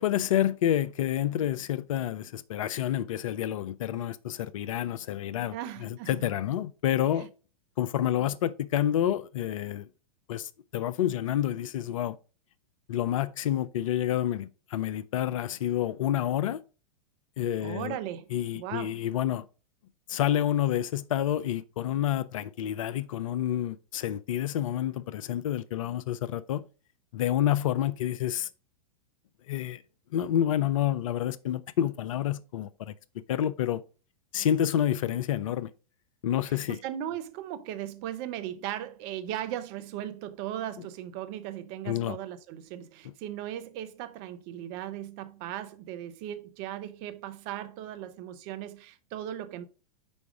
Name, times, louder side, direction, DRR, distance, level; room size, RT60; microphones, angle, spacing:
voice 1, 0.0-5.6 5.8-7.3 7.8-9.9 10.3-12.2 12.9-16.6 17.4-18.0 18.3-19.5 20.1-26.6 27.1-28.5 29.5-29.8 30.1-32.9 33.3-33.8 34.3-35.7 36.2-36.8 41.9-42.2, left 11 dB, 60° left, 0.5 m, -28 dB
voice 2, 5.5-6.3 7.2-7.3 17.6-18.3 18.5-18.9 36.7-49.6, right 11 dB, 40° right, 0.7 m, -37 dB
5.2 x 4.7 x 4.7 m
figure-of-eight pair, 95°, 19 cm